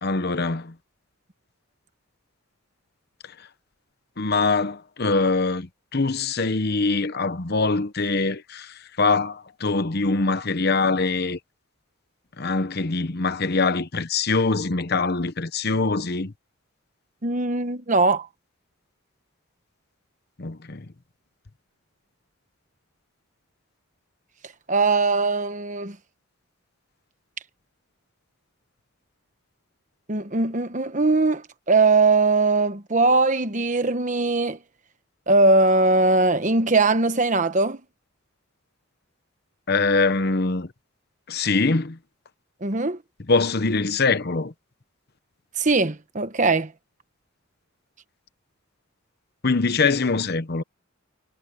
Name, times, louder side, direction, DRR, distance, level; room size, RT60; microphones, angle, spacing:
voice 1, 0.0-0.7 4.2-11.4 12.4-16.3 20.4-20.9 39.7-40.7 41.3-42.0 43.3-44.5 49.4-50.6, left 3 dB, 50° left, 1.0 m, -23 dB
voice 2, 17.2-18.3 24.7-26.0 30.1-34.6 35.3-37.8 42.6-43.0 45.6-46.7, right 3 dB, 35° right, 1.2 m, -20 dB
head